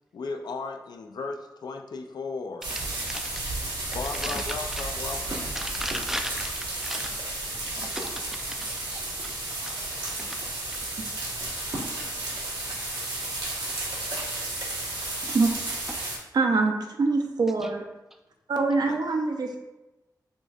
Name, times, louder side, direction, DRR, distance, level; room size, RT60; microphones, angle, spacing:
voice 1, 0.1-2.7 3.9-5.5 18.8-19.0, left 4 dB, 70° left, 5 dB, 0.4 m, -35 dB
sound 1, 2.6-16.2, right 2 dB, 90° right, 1.1 m, -32 dB
voice 2, 2.7-3.5 3.8-4.5 4.7-4.8 5.5-7.2 7.6-9.3 9.6-9.7 10.2-10.5 11.9-12.2 15.9-16.2 17.6-17.7, equal, 5° right, 5 dB, 0.4 m, -38 dB
voice 3, 16.3-17.8 18.5-19.6, right 3 dB, 70° right, 3 dB, 0.5 m, -24 dB
5.0 x 2.6 x 2.4 m, 1.0 s
wide cardioid pair, 75°, 7 cm